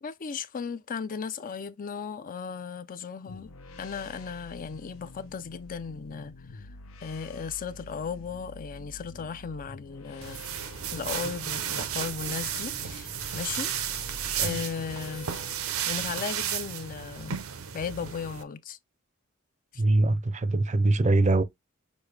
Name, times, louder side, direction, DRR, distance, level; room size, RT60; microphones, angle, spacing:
voice 1, 0.0-3.5 3.8-6.7 7.0-10.4 10.9-13.7 14.4-15.3 15.9-17.4 17.7-18.8 19.7-19.8, left 6 dB, 40° left, 0.4 m, -36 dB
sound 1, 3.3-16.1, left 2 dB, 75° left, 0.8 m, -47 dB
sound 2, 10.2-18.4, right 9 dB, 85° right, 0.7 m, -33 dB
voice 2, 19.8-21.4, right 2 dB, 35° right, 0.5 m, -23 dB
6.3 x 2.6 x 3.2 m
head